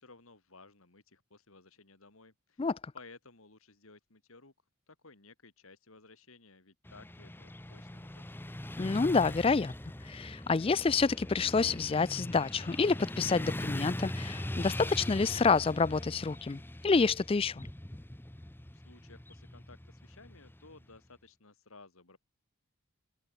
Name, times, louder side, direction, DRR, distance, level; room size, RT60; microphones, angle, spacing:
voice 1, 0.0-2.7 2.9-4.5 4.9-8.6 18.7-22.2, left 3 dB, 75° left, 2.8 m, -57 dB
Motorcycle / Traffic noise roadway noise, 6.8-21.0, left 1 dB, 10° left, 0.8 m, -41 dB
voice 2, 8.8-9.7 10.0-17.7, left 4 dB, 25° left, 0.3 m, -28 dB
head